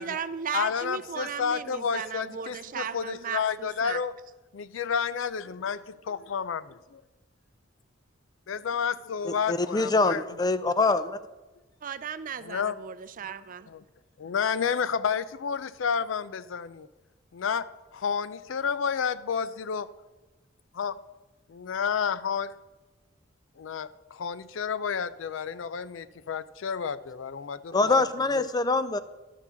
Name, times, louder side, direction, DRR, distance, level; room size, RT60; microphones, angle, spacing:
voice 1, 0.0-4.0 11.8-13.7, right 7 dB, 45° right, 14 dB, 0.5 m, -36 dB
voice 2, 0.5-4.1 4.5-7.0 8.5-10.4 10.6-10.8 12.4-12.8 13.7-13.8 14.2-16.9 17.3-17.7 17.9-19.9 20.7-21.0 21.5-22.5 23.6-28.0 28.3-28.5, left 6 dB, 75° left, 16 dB, 0.4 m, -30 dB
voice 3, 9.3-11.2 27.7-29.0, left 3 dB, 20° left, 13 dB, 0.5 m, -24 dB
12.0 x 4.6 x 7.0 m, 1.1 s
head